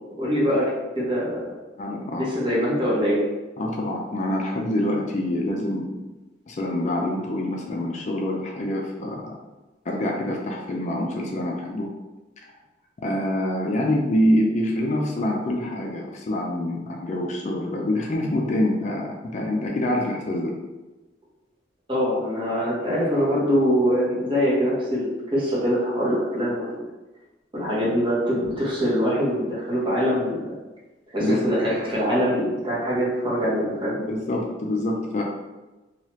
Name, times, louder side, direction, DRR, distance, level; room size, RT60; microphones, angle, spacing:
voice 1, 0.2-0.7 1.0-1.3 2.2-3.2 21.9-26.8 27.5-30.4 31.1-34.0, equal, 30° right, -7 dB, 1.1 m, -23 dB
voice 2, 1.8-2.3 3.6-6.0 6.5-9.3 9.9-11.9 13.0-20.5 31.2-31.5 34.0-35.2, left 1 dB, 40° left, 0 dB, 0.4 m, -26 dB
2.8 x 2.3 x 3.1 m, 1.1 s
head